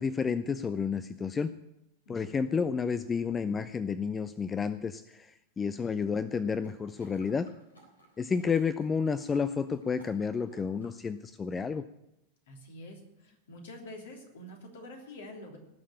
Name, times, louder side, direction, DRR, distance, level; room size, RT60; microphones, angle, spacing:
voice 1, 0.0-1.5 2.1-7.5 8.2-11.8, left 5 dB, 20° left, 15 dB, 0.5 m, -31 dB
voice 2, 2.0-2.4 12.5-15.6, left 1 dB, 60° left, 2 dB, 3.2 m, -47 dB
sound 1, 6.3-11.0 11.4-11.5, right 2 dB, 80° left, 3.8 m, -60 dB
18.5 x 6.6 x 8.7 m, 0.85 s
figure-of-eight pair, 90°, 0 cm